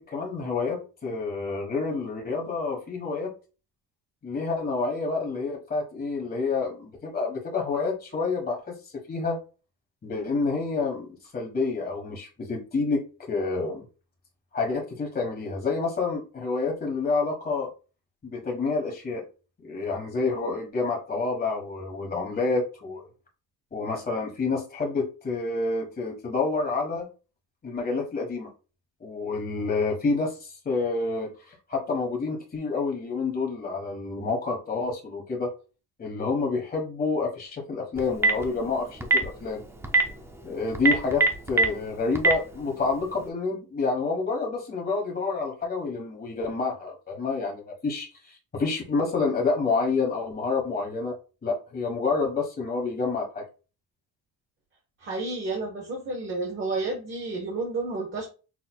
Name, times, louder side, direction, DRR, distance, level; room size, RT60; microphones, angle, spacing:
voice 1, 0.0-3.3 4.2-9.4 10.0-13.8 14.5-17.7 18.2-19.2 19.6-23.1 23.7-27.1 27.6-28.5 29.0-35.5 36.0-39.6 40.4-51.1 51.4-53.4, left 4 dB, 25° left, 1.3 m, -28 dB
Telephone, 38.0-38.4 39.0-39.2 39.8-40.0 40.7-41.7 42.2-42.3, right 3 dB, 5° right, 0.3 m, -19 dB
voice 2, 55.0-58.2, right 3 dB, 30° right, 1.0 m, -31 dB
6.1 x 3.2 x 2.2 m
cardioid pair, 175°, 37 cm